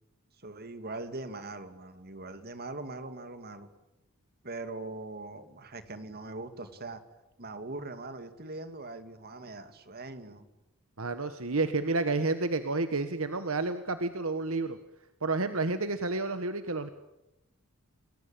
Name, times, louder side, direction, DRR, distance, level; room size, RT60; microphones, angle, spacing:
voice 1, 0.4-3.7 4.4-7.0 7.4-10.5, right 2 dB, 45° right, 9 dB, 2.6 m, -41 dB
voice 2, 11.0-14.8 15.2-16.9, right 3 dB, 65° right, 10 dB, 1.4 m, -30 dB
29.0 x 21.5 x 8.9 m, 0.96 s
head